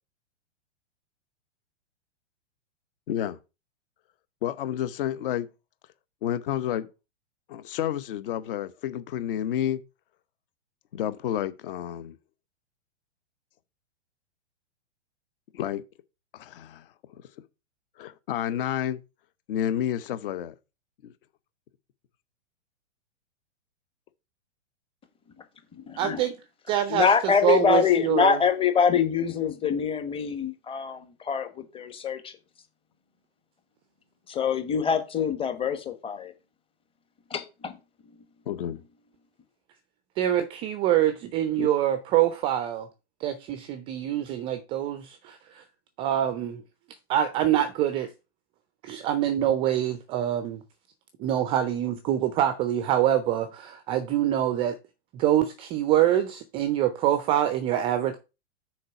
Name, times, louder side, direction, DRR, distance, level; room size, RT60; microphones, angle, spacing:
voice 1, 3.1-3.4 4.4-5.5 6.2-6.9 7.5-9.8 10.9-12.2 15.5-15.8 16.3-16.8 18.0-19.0 19.5-20.5 21.0-21.1 38.5-38.8 41.6-41.7, left 10 dB, 50° left, 0.9 m, -30 dB
voice 2, 26.0-26.3 26.7-28.4 40.2-42.9 43.2-45.6 46.0-46.6 47.1-48.1 48.8-50.6 51.2-54.8 55.1-58.2, right 11 dB, 15° right, 0.4 m, -25 dB
voice 3, 26.9-31.0 31.2-32.3 34.3-36.3 37.3-37.7, left 7 dB, 15° left, 1.1 m, -24 dB
6.5 x 4.4 x 5.8 m
figure-of-eight pair, 110°, 36 cm